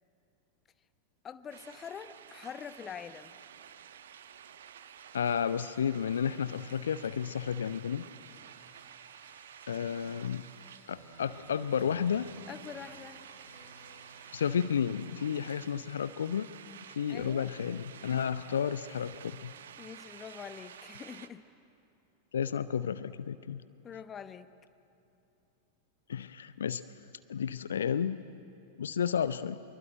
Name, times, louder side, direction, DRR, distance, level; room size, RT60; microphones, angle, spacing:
voice 1, 1.2-3.3 12.5-13.2 17.1-17.5 19.8-21.4 23.8-24.5, left 7 dB, 25° left, 13 dB, 0.9 m, -44 dB
sound 1, 1.5-21.3, right 9 dB, 60° right, 1.0 m, -51 dB
voice 2, 5.1-8.0 9.7-10.5 10.9-12.3 14.3-16.5 16.9-19.5 22.3-23.6 26.1-26.8 27.3-28.2 28.8-29.6, left 8 dB, 65° left, 15 dB, 0.6 m, -32 dB
sound 2, 7.5-17.4, equal, 90° left, 5.2 m, -58 dB
24.5 x 23.0 x 9.0 m, 2.9 s
figure-of-eight pair, 90°, 0 cm